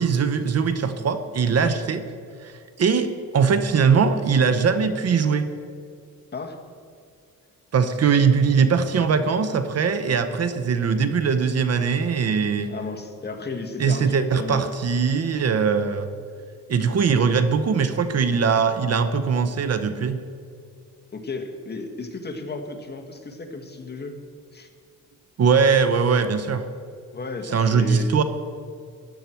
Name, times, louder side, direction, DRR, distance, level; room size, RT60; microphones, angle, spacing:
voice 1, 0.0-2.0 2.4-5.5 7.7-12.7 13.8-16.1 16.7-20.2 25.4-26.6 27.5-28.2, right 6 dB, 50° right, 10 dB, 0.9 m, -21 dB
voice 2, 12.6-14.7 21.1-24.1 24.5-24.7 27.1-28.1, left 3 dB, 30° left, 4 dB, 1.6 m, -34 dB
15.0 x 11.0 x 4.6 m, 2.3 s
cardioid pair, 95°, 33 cm